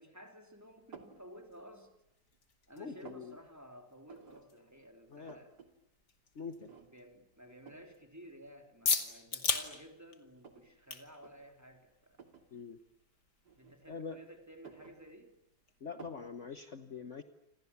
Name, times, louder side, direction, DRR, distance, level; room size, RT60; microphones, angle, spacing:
voice 1, 0.0-1.9 2.7-5.5 6.4-12.2 13.6-15.3, equal, 10° right, 5 dB, 3.4 m, -54 dB
sound 1, 0.5-15.8, left 5 dB, 85° left, 3.0 m, -43 dB
sound 2, 0.9-1.2 1.8-2.4 2.7-3.3 4.1-4.4 4.8-4.9 5.1-5.7 6.0-6.1 6.7-7.1 7.7-7.9 8.8-8.9 9.4-10.7 11.1-11.3 12.1-12.5 13.4-14.1 14.5-15.5 16.0-16.3, right 5 dB, 75° right, 3.4 m, -54 dB
voice 2, 2.8-3.4 5.1-5.4 6.3-6.7 12.5-12.8 13.9-14.2 15.8-17.2, left 5 dB, 50° left, 9 dB, 1.5 m, -44 dB
29.5 x 26.5 x 7.2 m, 0.84 s
omnidirectional pair, 1.8 m